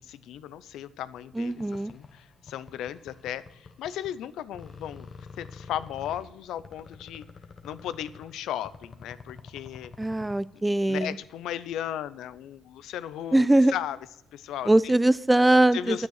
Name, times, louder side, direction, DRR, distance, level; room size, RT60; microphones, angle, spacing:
voice 1, 0.0-5.1 5.4-7.2 7.6-9.9 10.9-13.5 13.7-14.0 14.3-14.9 15.7-16.1, left 11 dB, 85° left, 16 dB, 0.5 m, -36 dB
voice 2, 1.4-1.9 10.0-11.2 13.3-13.7 14.7-16.1, right 1 dB, 10° right, 18 dB, 0.4 m, -21 dB
sound 1, 1.5-4.3 4.5-10.6, left 5 dB, 40° left, 1.2 m, -48 dB
9.6 x 9.4 x 6.4 m, 0.88 s
cardioid pair, 90°, 0 cm